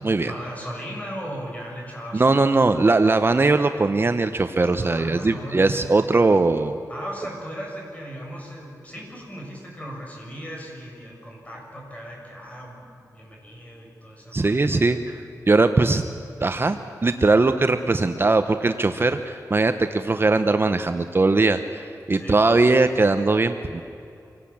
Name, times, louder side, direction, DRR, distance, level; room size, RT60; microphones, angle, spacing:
voice 1, 0.2-2.7 4.8-5.8 6.9-14.8 22.1-22.8, equal, 20° left, -1 dB, 7.2 m, -37 dB
voice 2, 2.1-6.8 14.3-16.0 16.4-23.8, right 3 dB, 35° right, 8 dB, 0.9 m, -20 dB
26.0 x 18.0 x 8.6 m, 2.7 s
wide cardioid pair, 95°, 7 cm